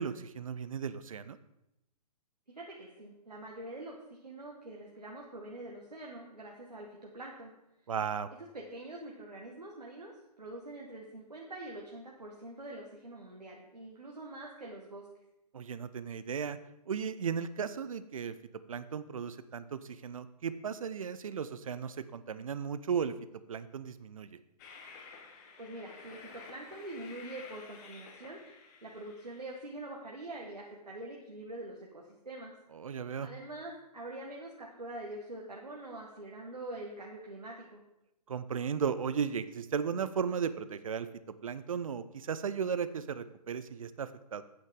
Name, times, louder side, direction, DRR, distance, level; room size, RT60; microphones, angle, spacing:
voice 1, 0.0-1.4 7.9-8.3 15.5-16.6 16.9-18.3 18.7-23.1 23.5-24.3 32.7-33.3 38.3-41.1 41.4-44.4, right 7 dB, 55° right, 14 dB, 0.6 m, -35 dB
voice 2, 2.5-7.5 8.5-15.0 25.6-28.4 28.8-32.5 33.2-37.8, right 1 dB, 80° right, -2 dB, 1.6 m, -45 dB
Train, 24.6-29.6, left 5 dB, 25° left, 1.2 m, -52 dB
9.1 x 8.8 x 3.8 m, 0.87 s
figure-of-eight pair, 125°, 21 cm